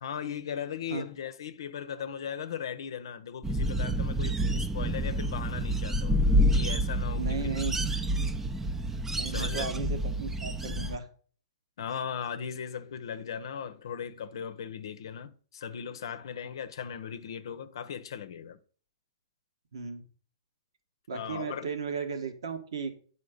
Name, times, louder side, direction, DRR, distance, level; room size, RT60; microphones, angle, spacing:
voice 1, 0.0-6.2 6.5-7.8 9.3-9.7 11.8-18.6 21.1-21.7, left 8 dB, 65° left, 0.7 m, -38 dB
sound 1, 3.4-11.0, equal, 10° right, 0.6 m, -28 dB
voice 2, 7.1-7.8 9.1-11.1 16.4-16.5 19.7-20.0 21.1-22.9, right 5 dB, 75° right, 1.5 m, -35 dB
8.6 x 4.3 x 6.4 m
hypercardioid pair, 125°, 3 cm